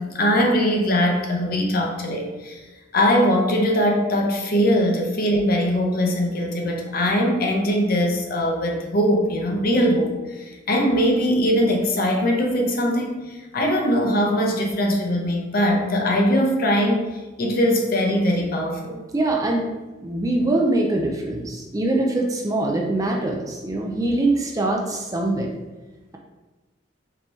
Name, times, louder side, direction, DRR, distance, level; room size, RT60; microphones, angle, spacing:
voice 1, 0.0-2.6 2.9-17.1 17.4-19.0, equal, 45° left, 1 dB, 0.7 m, -21 dB
voice 2, 19.1-19.7 20.0-25.5, right 2 dB, 15° right, 0 dB, 0.4 m, -23 dB
5.3 x 2.9 x 3.0 m, 1.2 s
head